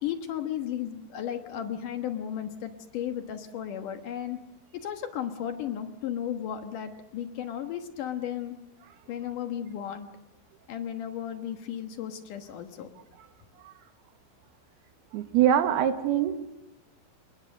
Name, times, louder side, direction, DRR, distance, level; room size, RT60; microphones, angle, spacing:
voice 1, 0.0-4.4 4.7-8.6 9.1-10.1 10.7-12.9, left 10 dB, 65° left, 6 dB, 2.6 m, -34 dB
voice 2, 15.1-16.4, right 10 dB, 85° right, 8 dB, 3.4 m, -23 dB
27.0 x 21.0 x 6.6 m, 0.95 s
omnidirectional pair, 4.4 m